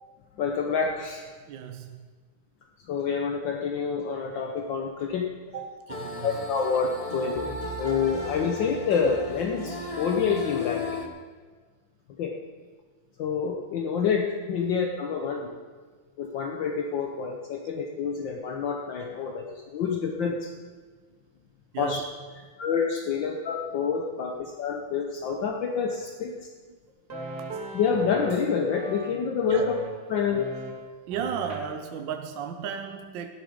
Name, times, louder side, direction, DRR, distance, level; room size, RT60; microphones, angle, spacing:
voice 1, 0.4-1.2 2.9-5.3 6.2-7.4 7.8-11.0 12.2-12.3 13.2-15.5 16.2-20.5 21.8-22.0 22.6-26.3 27.7-29.7 30.1-30.5, left 6 dB, 65° left, 2 dB, 1.5 m, -27 dB
voice 2, 1.5-2.0 5.5-6.3 7.1-7.3 21.7-22.0 29.5-29.7 31.1-33.3, right 8 dB, 70° right, 6 dB, 1.4 m, -34 dB
sound 1, 5.9-11.1, left 2 dB, 45° left, 0.4 m, -35 dB
sound 2, 26.9-28.4 28.7-29.1 29.5-29.9 30.3-30.7 31.1-31.6, right 1 dB, 50° right, 2.5 m, -38 dB
13.5 x 11.0 x 5.1 m, 1.5 s
omnidirectional pair, 2.3 m